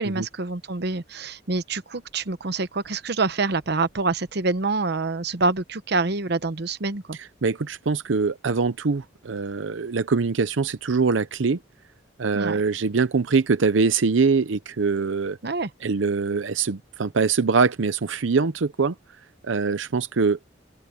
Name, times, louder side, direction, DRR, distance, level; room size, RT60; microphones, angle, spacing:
voice 1, 0.0-7.2 12.3-12.6 15.4-15.7, right 3 dB, 60° right, 1.0 m, -26 dB
voice 2, 7.4-11.6 12.2-15.4 15.8-19.0 19.4-20.4, right 4 dB, 90° right, 0.6 m, -23 dB
open air
head